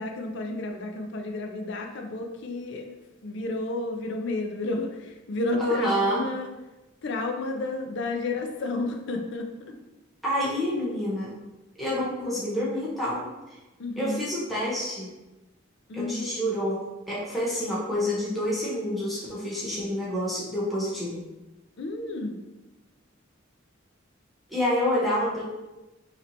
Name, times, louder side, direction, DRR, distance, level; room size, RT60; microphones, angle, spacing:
voice 1, 0.0-2.8 3.2-4.9 5.3-6.5 7.0-9.7 12.2-12.3 13.8-14.2 15.9-16.2 21.8-22.4, left 2 dB, 65° left, 3 dB, 0.5 m, -31 dB
voice 2, 5.6-6.2 10.2-11.3 11.8-13.6 14.0-15.1 15.9-21.2 24.5-25.4, equal, ahead, -8 dB, 0.7 m, -28 dB
4.1 x 2.9 x 2.6 m, 1.0 s
head